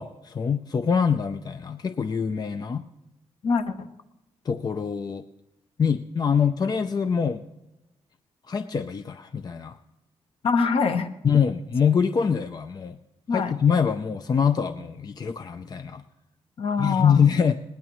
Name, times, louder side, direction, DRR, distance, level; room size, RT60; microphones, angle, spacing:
voice 1, 0.0-2.9 4.5-5.2 5.8-7.5 8.5-9.8 11.2-13.0 13.3-16.0 16.8-17.5, left 6 dB, 35° left, 10 dB, 0.5 m, -24 dB
voice 2, 3.4-3.9 10.4-11.1 13.3-13.5 16.6-17.3, left 5 dB, 55° left, 7 dB, 1.0 m, -24 dB
19.5 x 18.5 x 3.1 m, 0.96 s
cardioid pair, 100°, 11 cm